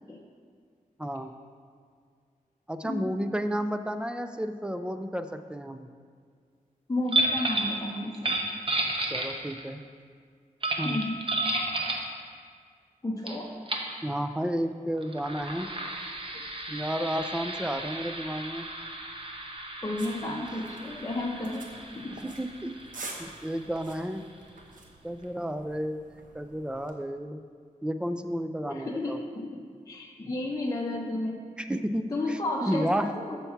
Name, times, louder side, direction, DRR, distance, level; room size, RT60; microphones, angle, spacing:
voice 1, 1.0-1.3 2.7-5.9 9.1-9.8 10.8-11.0 14.0-15.7 16.7-18.7 20.2-20.4 22.2-22.8 23.2-24.2 25.0-27.4 27.8-29.2 31.6-33.1, equal, 5° right, 8 dB, 0.3 m, -32 dB
voice 2, 6.9-8.4 10.8-11.2 13.0-13.5 16.3-16.4 19.8-21.7 21.9-22.2 28.6-31.4 32.1-33.4, left 2 dB, 25° left, -1 dB, 0.7 m, -32 dB
sound 1, 7.1-7.8 8.1-9.7 10.6-12.1 13.3-13.4 13.7-13.9 15.0-24.3, right 2 dB, 40° right, 0.8 m, -33 dB
sound 2, 20.0-26.9, right 2 dB, 65° right, 0.9 m, -47 dB
7.0 x 4.5 x 5.6 m, 2.1 s
wide cardioid pair, 95°, 14 cm